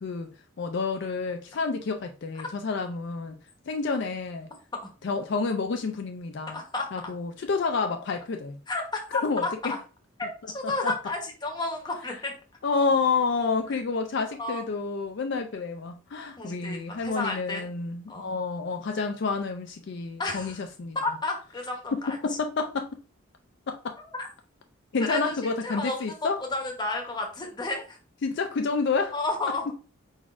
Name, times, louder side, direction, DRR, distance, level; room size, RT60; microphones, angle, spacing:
voice 1, 0.0-3.4 3.7-4.5 5.0-6.6 6.9-8.6 9.2-9.8 10.6-11.0 12.6-21.0 21.9-22.9 23.7-24.0 24.9-26.4 28.2-29.1 29.7-29.8, left 4 dB, 55° left, 0.4 m, -29 dB
voice 2, 6.5-6.9 8.7-8.8 9.1-9.8 10.2-10.3 10.5-12.3 14.4-14.6 16.4-17.7 18.1-18.3 20.2-20.6 20.9-22.2 24.1-24.3 25.1-28.0 29.1-29.6, left 2 dB, 20° left, 0.9 m, -31 dB
4.8 x 4.0 x 2.4 m
head